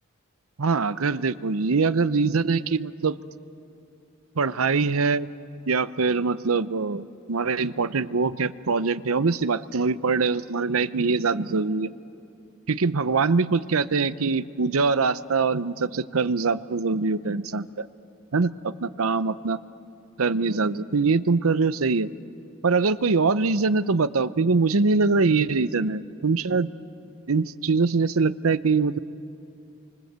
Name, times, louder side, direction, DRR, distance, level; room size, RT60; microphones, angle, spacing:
voice 1, 0.6-3.2 4.4-5.3 5.7-11.9 12.7-17.9 18.3-19.6 20.2-22.1 22.6-26.7 27.3-29.0, right 4 dB, 85° right, 15 dB, 0.8 m, -23 dB
29.5 x 24.5 x 8.1 m, 2.5 s
head